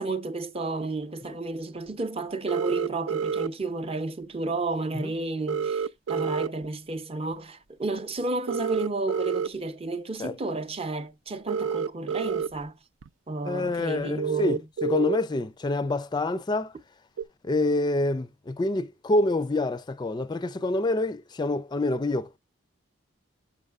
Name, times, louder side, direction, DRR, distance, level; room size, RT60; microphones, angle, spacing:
voice 1, 0.0-12.8 13.3-14.6, right 3 dB, 30° right, 0.6 m, -32 dB
sound 1, 2.5-3.5 5.5-6.5 8.5-9.5 11.5-12.5 13.0-13.1 14.2-15.2 17.2-17.3, right 6 dB, 90° right, 0.4 m, -28 dB
voice 2, 13.4-16.7 17.4-22.4, left 2 dB, 20° left, 0.4 m, -27 dB
8.6 x 6.4 x 2.3 m
head